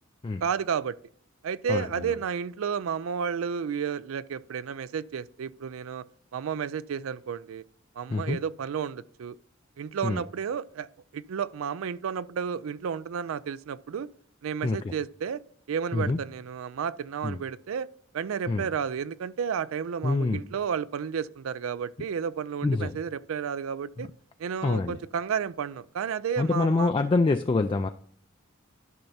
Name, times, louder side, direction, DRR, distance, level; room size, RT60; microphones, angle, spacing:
voice 1, 0.4-0.9 1.4-6.0 6.3-7.6 8.0-9.4 9.8-10.9 11.1-14.1 14.4-15.4 15.7-17.9 18.1-24.1 24.4-26.9, right 7 dB, 70° right, 0.4 m, -32 dB
voice 2, 1.7-2.2 8.1-8.4 10.0-10.2 14.6-15.0 15.9-16.2 17.2-17.4 18.5-18.7 20.0-20.4 22.6-23.0 24.0-24.1 24.6-25.0 26.4-27.9, left 3 dB, 25° left, 0.3 m, -26 dB
12.0 x 5.8 x 2.7 m
head